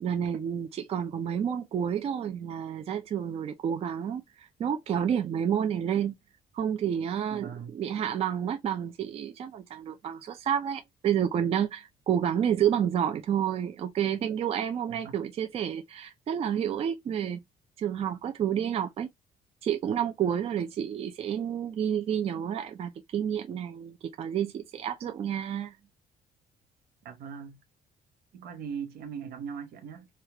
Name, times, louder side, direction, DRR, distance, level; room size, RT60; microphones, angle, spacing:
voice 1, 0.0-6.2 6.5-17.4 17.8-19.1 19.6-25.8, right 9 dB, 40° right, 0.5 m, -30 dB
voice 2, 7.3-7.7 14.9-15.1 27.0-27.6 28.3-30.1, right 7 dB, 85° right, 1.0 m, -39 dB
3.3 x 2.4 x 2.8 m
cardioid pair, 160°, 16 cm